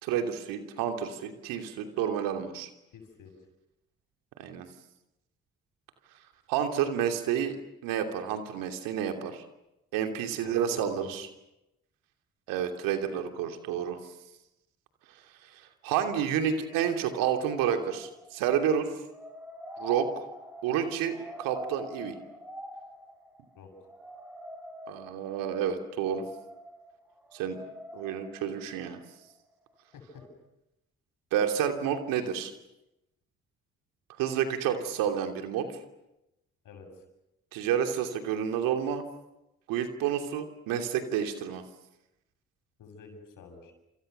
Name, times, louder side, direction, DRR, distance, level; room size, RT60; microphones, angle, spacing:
voice 1, 0.0-2.7 4.4-4.7 6.5-9.4 9.9-11.3 12.5-14.0 15.4-18.9 19.8-20.2 20.6-22.2 24.9-26.2 27.3-27.6 27.9-29.0 31.3-32.5 34.2-35.8 37.5-39.0 39.7-41.6, right 8 dB, 80° right, 6 dB, 2.9 m, -30 dB
voice 2, 2.9-3.3 10.4-11.1 23.6-23.7 29.9-30.2 36.6-37.0 42.8-43.7, left 5 dB, 70° left, 5 dB, 7.5 m, -48 dB
sound 1, 16.4-29.7 30.1-30.3, equal, 5° right, 5.4 m, -46 dB
29.0 x 28.0 x 6.8 m, 0.90 s
hypercardioid pair, 45°, 33 cm